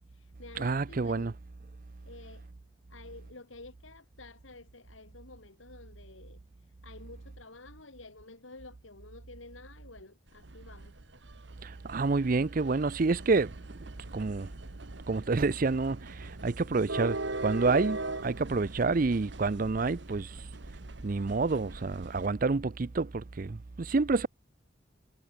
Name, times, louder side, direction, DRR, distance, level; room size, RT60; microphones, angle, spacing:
voice 1, 0.0-1.4 2.0-2.5 2.9-6.4 6.8-11.0, left 2 dB, 90° left, 3.2 m, -51 dB
voice 2, 0.6-1.3 11.6-13.5 14.1-14.5 15.1-20.3 21.0-24.3, right 3 dB, 45° right, 0.5 m, -28 dB
sound 1, 10.3-22.3, right 2 dB, 65° right, 2.8 m, -41 dB
head